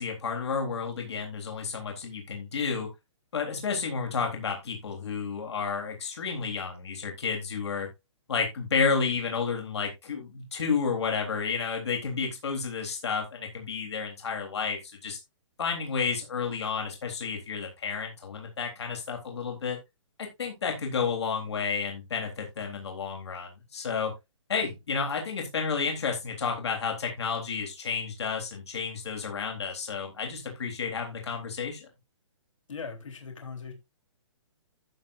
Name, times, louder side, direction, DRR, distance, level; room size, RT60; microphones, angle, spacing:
voice 1, 0.0-2.9 3.3-7.9 8.3-15.2 15.6-19.8 20.2-24.1 24.5-31.9, left 5 dB, 60° left, 3.6 m, -31 dB
voice 2, 32.7-33.7, left 5 dB, 90° left, 3.8 m, -39 dB
14.5 x 6.5 x 2.6 m
hypercardioid pair, 180°, 16 cm